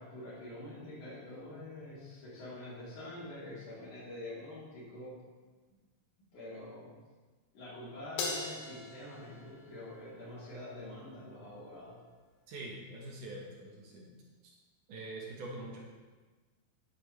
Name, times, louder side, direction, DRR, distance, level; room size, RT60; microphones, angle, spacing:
voice 1, 0.0-5.2 6.3-6.9 7.5-12.0 15.5-15.6, left 1 dB, 60° left, -9 dB, 4.3 m, -46 dB
Crash cymbal, 8.2-10.7, left 3 dB, 90° left, 3.1 m, -41 dB
voice 2, 12.5-14.1 14.9-15.8, right 2 dB, 70° right, -2 dB, 2.7 m, -44 dB
10.0 x 8.4 x 3.2 m, 1.3 s
omnidirectional pair, 4.0 m